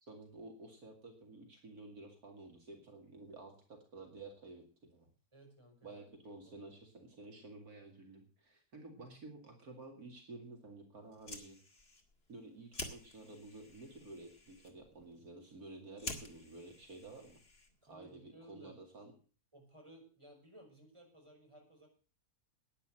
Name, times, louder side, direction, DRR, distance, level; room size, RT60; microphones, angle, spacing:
voice 1, 0.0-5.1 5.8-11.6 12.3-17.4 17.9-19.1, right 2 dB, 70° right, 2 dB, 2.8 m, -52 dB
voice 2, 5.3-6.6 7.4-7.5 17.8-18.7 19.5-21.9, right 1 dB, 20° right, 0 dB, 5.9 m, -59 dB
Fire, 11.0-18.0, left 2 dB, 40° left, 2.4 m, -50 dB
11.5 x 9.9 x 7.5 m, 0.39 s
omnidirectional pair, 1.6 m